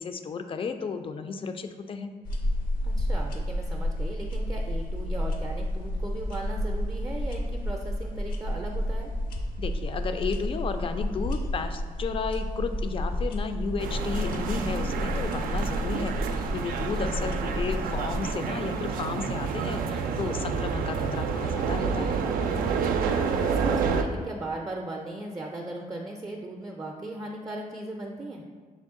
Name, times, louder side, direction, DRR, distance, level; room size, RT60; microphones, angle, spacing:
voice 1, 0.0-2.1 9.6-22.2, left 5 dB, 40° left, 8 dB, 0.4 m, -33 dB
sound 1, 2.3-18.3, left 1 dB, 70° left, 0.6 m, -31 dB
voice 2, 2.8-9.1 17.0-17.3 23.0-28.4, right 2 dB, 20° right, 0 dB, 0.4 m, -37 dB
sound 2, 13.8-24.0, right 5 dB, 80° right, 0.4 m, -29 dB
6.1 x 2.2 x 3.6 m, 1.5 s
cardioid pair, 90°, 15 cm